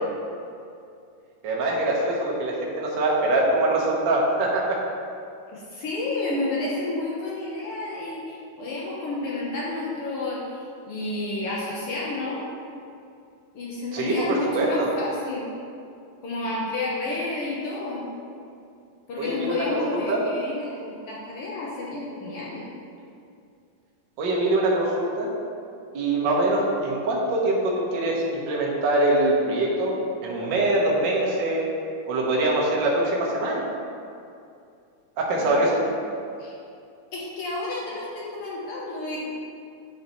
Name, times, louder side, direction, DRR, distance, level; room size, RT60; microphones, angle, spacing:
voice 1, 1.4-4.8 13.9-14.9 19.2-20.2 24.2-25.3 25.9-29.9 30.2-31.6 32.1-33.6 35.2-35.8, right 2 dB, 65° right, -4 dB, 1.1 m, -23 dB
voice 2, 5.5-12.5 13.5-15.5 16.2-18.1 19.1-22.7 35.4-35.6 36.4-36.6 37.1-39.2, left 2 dB, 85° left, -5 dB, 1.2 m, -30 dB
9.8 x 5.3 x 3.0 m, 2.5 s
omnidirectional pair, 3.8 m